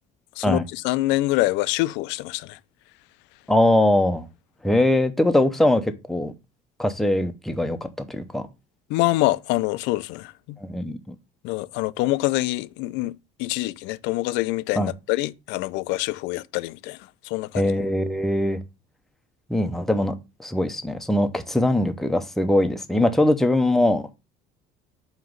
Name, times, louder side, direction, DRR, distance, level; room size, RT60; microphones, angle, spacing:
voice 1, 0.4-2.6 8.9-10.6 11.4-13.1 13.4-17.0 17.2-17.7, left 18 dB, 85° left, 0.4 m, -25 dB
voice 2, 3.5-4.3 4.6-6.3 6.8-8.5 10.6-11.1 14.8-14.9 17.5-18.6 19.5-20.1 20.4-24.1, left 1 dB, ahead, 0.6 m, -21 dB
7.4 x 3.0 x 5.0 m
cardioid pair, 150°, 18 cm